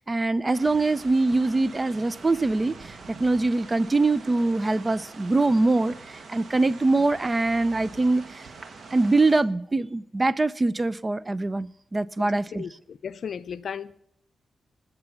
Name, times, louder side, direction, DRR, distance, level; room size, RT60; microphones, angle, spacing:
voice 1, 0.0-8.4 8.9-12.7, right 2 dB, 30° right, 0.5 m, -23 dB
sound 1, 0.5-9.4, right 4 dB, 65° right, 1.5 m, -44 dB
voice 2, 12.2-14.0, left 7 dB, 70° left, 0.5 m, -36 dB
19.5 x 6.9 x 6.9 m
cardioid pair, 60°, 0 cm